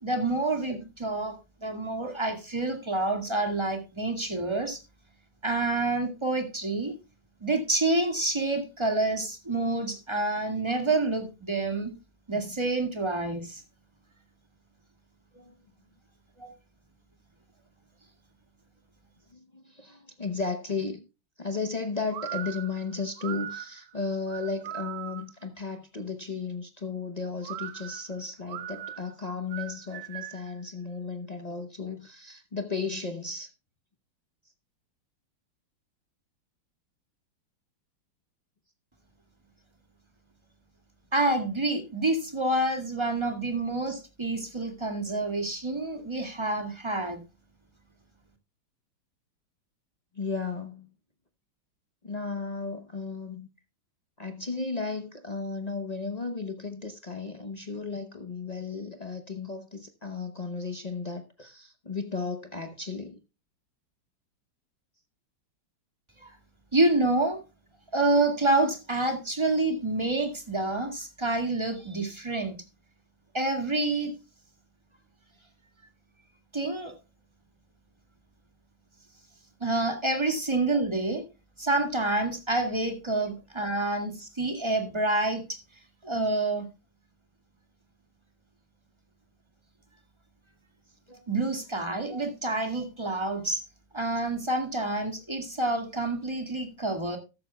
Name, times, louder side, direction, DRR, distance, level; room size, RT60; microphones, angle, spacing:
voice 1, 0.0-1.3 1.6-4.8 5.4-7.0 7.4-11.9 12.3-13.6 16.4-16.5 41.1-47.2 66.2-66.3 66.7-67.4 67.9-72.6 73.3-74.1 76.5-76.9 79.6-81.2 81.6-85.6 86.0-86.6 91.3-93.6 93.9-97.2, right 2 dB, 15° right, 1.9 m, -28 dB
voice 2, 19.3-21.0 21.4-33.5 50.1-50.9 52.0-53.5 54.2-63.2 79.7-79.8 91.1-91.2, left 4 dB, 55° left, 0.4 m, -34 dB
sound 1, 22.1-25.4 27.4-30.5, right 12 dB, 65° right, 0.9 m, -39 dB
13.5 x 12.5 x 2.3 m
omnidirectional pair, 2.2 m